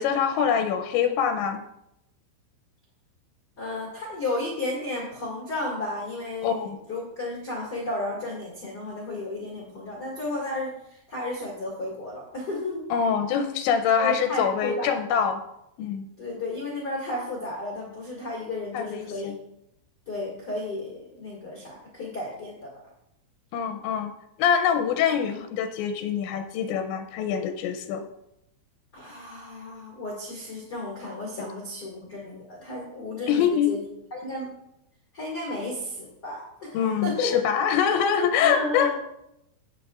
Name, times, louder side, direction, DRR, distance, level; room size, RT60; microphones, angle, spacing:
voice 1, 0.0-1.6 6.4-6.8 12.9-15.4 15.8-16.1 18.7-19.3 23.5-24.1 24.4-28.0 33.3-33.7 36.7-39.0, left 7 dB, 85° left, 7 dB, 2.9 m, -24 dB
voice 2, 3.6-12.8 14.0-14.9 16.2-19.4 20.1-22.7 24.8-24.9 28.9-33.8 34.1-34.5 35.1-37.4 38.4-39.0, left 2 dB, 45° left, -5 dB, 1.2 m, -33 dB
19.5 x 6.6 x 2.4 m, 0.83 s
omnidirectional pair, 5.2 m